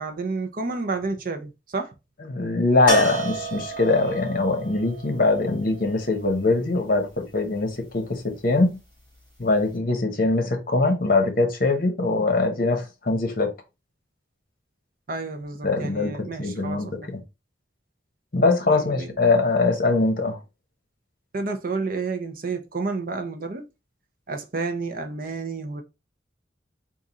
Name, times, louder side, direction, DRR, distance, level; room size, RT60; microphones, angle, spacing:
voice 1, 0.0-1.9 15.1-17.1 18.7-19.1 21.3-23.7 24.3-25.8, right 3 dB, 50° right, 0.7 m, -30 dB
voice 2, 2.2-8.7 9.4-13.5 15.6-17.2 18.3-20.4, left 3 dB, 50° left, 1.1 m, -22 dB
sound 1, 2.9-6.8 9.4-9.5 9.8-9.9, right 2 dB, 10° right, 2.3 m, -31 dB
3.7 x 2.6 x 4.1 m
head